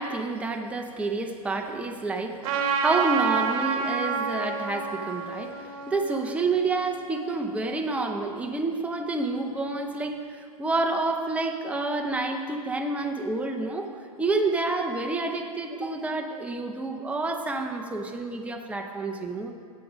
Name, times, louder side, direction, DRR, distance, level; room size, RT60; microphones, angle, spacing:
voice 1, 0.0-13.9 14.2-19.5, right 3 dB, 5° right, 3 dB, 0.7 m, -29 dB
Trumpet, 2.4-7.1, right 5 dB, 60° right, 1.2 m, -29 dB
8.4 x 7.5 x 5.1 m, 2.2 s
hypercardioid pair, 115°, 19 cm